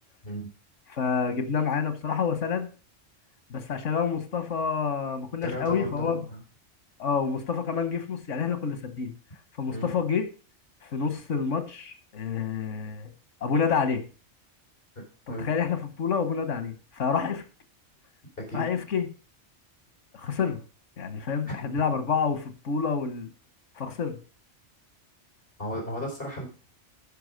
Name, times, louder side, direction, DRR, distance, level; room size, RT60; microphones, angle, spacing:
voice 1, 0.9-2.7 3.5-6.2 7.0-9.1 9.6-10.2 10.8-13.1 13.4-14.0 15.3-17.4 18.5-19.1 20.1-20.6 21.0-23.3 23.8-24.2, left 6 dB, 90° left, 9 dB, 1.6 m, -28 dB
voice 2, 5.4-6.4 9.7-9.9 15.3-15.5 18.4-18.7 25.6-26.4, left 1 dB, 50° left, -1 dB, 4.4 m, -34 dB
10.5 x 5.6 x 6.5 m, 0.37 s
omnidirectional pair, 1.2 m